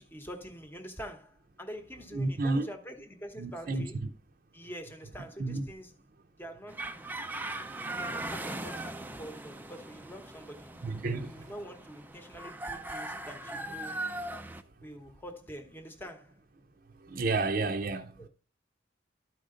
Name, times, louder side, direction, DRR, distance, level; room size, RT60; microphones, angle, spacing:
voice 1, 0.0-4.0 4.5-5.9 6.4-6.9 8.0-10.8 11.2-14.1 14.8-16.4 18.2-18.3, equal, 10° left, 1.0 m, -45 dB
voice 2, 2.1-2.7 3.4-3.9 5.4-5.6 10.8-11.5 17.0-18.2, right 3 dB, 50° right, 0.7 m, -31 dB
sound 1, 6.7-14.6, right 2 dB, 10° right, 0.5 m, -39 dB
12.5 x 5.0 x 3.8 m
head